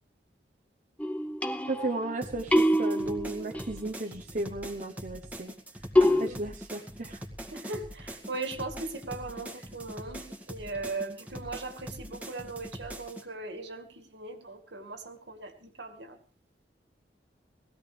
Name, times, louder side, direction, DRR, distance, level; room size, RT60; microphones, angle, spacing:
sound 1, 1.0-2.1 2.5-3.7 6.0-6.3, left 1 dB, 10° left, 1.1 m, -25 dB
voice 1, 1.7-5.5 6.0-7.2, right 2 dB, 45° right, 1.1 m, -35 dB
sound 2, 2.2-13.2, equal, 10° right, 2.1 m, -43 dB
voice 2, 6.1-6.4 7.5-16.2, right 3 dB, 85° right, 2.3 m, -39 dB
20.5 x 15.5 x 3.4 m
head